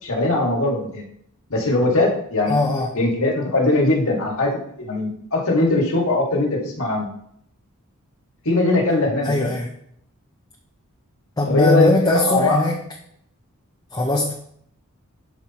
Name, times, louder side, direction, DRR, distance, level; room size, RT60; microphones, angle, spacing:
voice 1, 0.0-1.0 1.5-2.6 3.0-4.5 4.8-7.1 8.5-9.5 11.5-12.6, left 2 dB, 65° left, -1 dB, 1.8 m, -20 dB
voice 2, 2.4-2.9 9.2-9.7 11.4-12.8 13.9-14.3, left 2 dB, 20° left, 0 dB, 0.7 m, -20 dB
12.0 x 4.8 x 2.9 m, 0.70 s
head